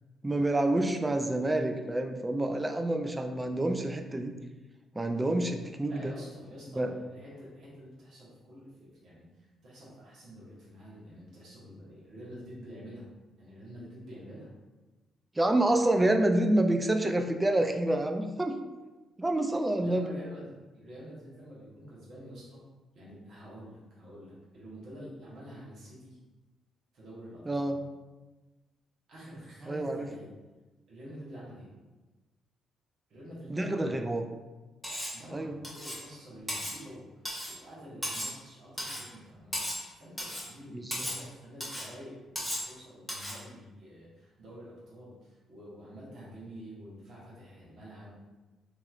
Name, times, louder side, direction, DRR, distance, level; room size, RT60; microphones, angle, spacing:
voice 1, 0.2-4.4 5.0-6.1 6.7-6.9 15.4-18.6 19.2-20.1 27.5-27.8 29.7-30.1 33.5-34.2 35.3-35.6 40.7-41.1, right 1 dB, 15° right, 5 dB, 0.3 m, -28 dB
voice 2, 5.9-13.1 13.4-14.5 19.8-22.6 22.9-26.2 26.9-27.7 29.1-30.3 30.9-31.7 33.1-34.2 35.1-48.1, equal, 70° right, -7 dB, 1.2 m, -48 dB
Cutlery silverware, 34.8-35.2 35.6-36.0 36.5-36.8 37.2-37.6 38.0-38.4 38.8-39.1 39.5-39.9 40.2-40.5 40.9-41.2 41.6-41.9 42.4-42.7 43.1-43.4, equal, ahead, 0.9 m, -36 dB
3.0 x 2.8 x 2.4 m, 1.2 s
cardioid pair, 90°, 0 cm